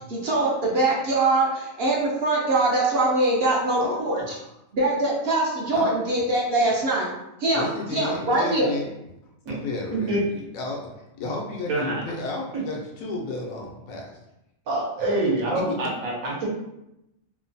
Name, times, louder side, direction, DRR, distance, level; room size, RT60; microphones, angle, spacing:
voice 1, 0.1-4.2 4.7-7.1 7.4-8.7, right 2 dB, 60° right, -3 dB, 0.7 m, -23 dB
voice 2, 7.5-8.9 9.5-10.9 11.2-14.2, left 3 dB, 80° left, 0 dB, 1.1 m, -32 dB
voice 3, 9.9-10.2 11.7-12.0 12.5-12.6 14.7-16.5, right 2 dB, 80° right, -4 dB, 1.3 m, -26 dB
3.0 x 2.1 x 2.6 m, 0.87 s
omnidirectional pair, 1.4 m